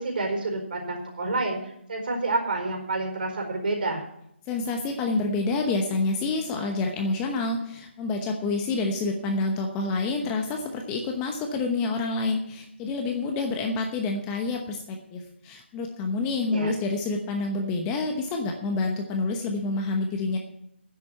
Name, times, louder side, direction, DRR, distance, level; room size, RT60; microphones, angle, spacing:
voice 1, 0.0-4.0 16.5-16.7, right 2 dB, 45° right, 2 dB, 4.6 m, -29 dB
voice 2, 4.5-20.4, left 3 dB, 15° left, 3 dB, 0.9 m, -28 dB
10.5 x 7.6 x 9.1 m, 0.75 s
figure-of-eight pair, 160°, 7 cm